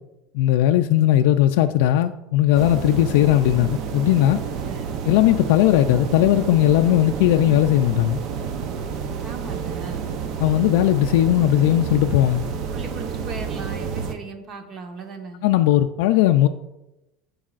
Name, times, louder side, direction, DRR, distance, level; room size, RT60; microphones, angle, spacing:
voice 1, 0.3-4.4 5.1-8.2 10.4-12.4 15.4-16.5, left 13 dB, 85° left, 0.3 m, -18 dB
sound 1, 2.5-14.1, right 6 dB, 55° right, 0.6 m, -30 dB
voice 2, 4.6-4.9 9.2-10.1 12.7-15.4, right 3 dB, 40° right, 1.1 m, -37 dB
14.0 x 4.7 x 2.5 m
supercardioid pair, 140°, 0 cm